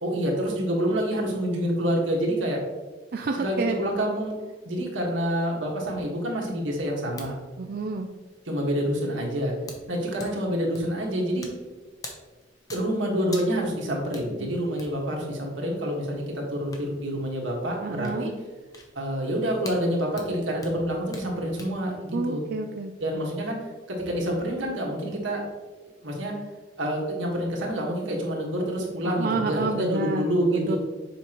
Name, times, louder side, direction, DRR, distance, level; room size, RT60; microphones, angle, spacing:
voice 1, 0.0-2.6 3.3-4.3 4.6-7.4 8.5-9.5 9.9-11.5 12.7-18.3 18.9-22.4 23.0-23.6 23.9-25.4 26.0-26.3 26.8-30.8, equal, 80° right, -1 dB, 1.6 m, -27 dB
voice 2, 3.1-3.8 7.6-8.1 17.8-18.3 22.1-22.9 29.0-30.2 30.5-30.8, right 3 dB, 50° right, 3 dB, 0.4 m, -29 dB
sound 1, 6.9-21.8, left 2 dB, 20° left, 0.8 m, -47 dB
7.2 x 5.2 x 3.0 m, 1.3 s
head